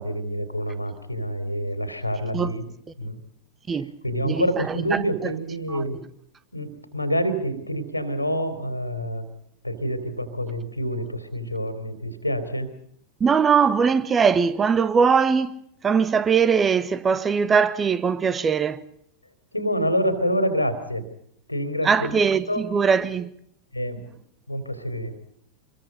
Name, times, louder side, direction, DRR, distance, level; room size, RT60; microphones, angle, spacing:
voice 1, 0.0-2.7 3.0-3.2 3.7-3.8 4.0-6.0 6.5-9.2 9.6-12.7 19.5-21.0 21.5-22.7 23.7-24.2 24.5-25.1, equal, 85° left, 3.4 m, -27 dB
voice 2, 4.2-5.0 5.7-5.8 13.2-15.6 15.8-18.8 21.8-23.3, right 6 dB, 20° right, 1.5 m, -21 dB
27.5 x 22.0 x 5.3 m
figure-of-eight pair, 90°, 0 cm